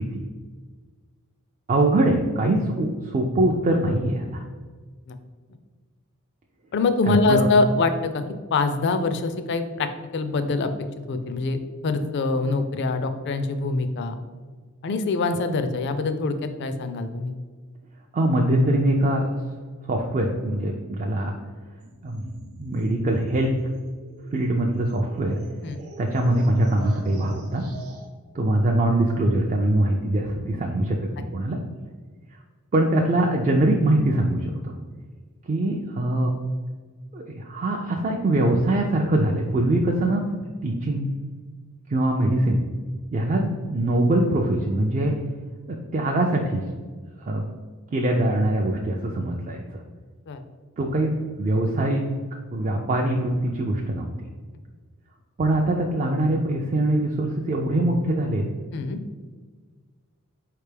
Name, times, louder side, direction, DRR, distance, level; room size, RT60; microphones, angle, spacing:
voice 1, 1.7-4.4 7.1-7.5 18.1-19.2 19.8-21.3 22.0-22.2 22.6-23.5 24.3-25.4 26.0-27.6 28.3-31.6 32.7-34.8 35.5-36.3 37.1-40.2 40.6-41.1 41.9-42.6 43.1-45.1 45.7-46.6 47.2-47.4 47.9-49.6 50.8-52.1 52.5-54.3 55.4-58.4, right 1 dB, 35° right, 1 dB, 0.3 m, -23 dB
voice 2, 6.7-8.2 8.5-10.7 11.1-11.6 11.8-14.2 14.8-17.3 25.6-25.8 50.3-50.4 58.7-59.0, left 3 dB, 50° left, 9 dB, 0.4 m, -24 dB
sound 1, 21.8-28.1, right 2 dB, 75° right, 0.7 m, -44 dB
4.6 x 3.3 x 3.3 m, 1.5 s
head